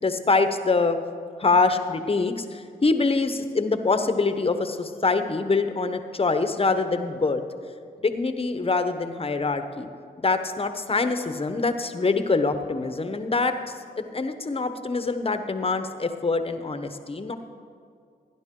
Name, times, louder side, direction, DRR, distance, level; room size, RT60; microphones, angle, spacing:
voice 1, 0.0-1.0 1.4-7.4 8.0-9.9 10.2-13.6 14.0-17.4, left 3 dB, 30° left, 8 dB, 1.0 m, -24 dB
16.5 x 10.5 x 3.8 m, 2.3 s
cardioid pair, 65°, 18 cm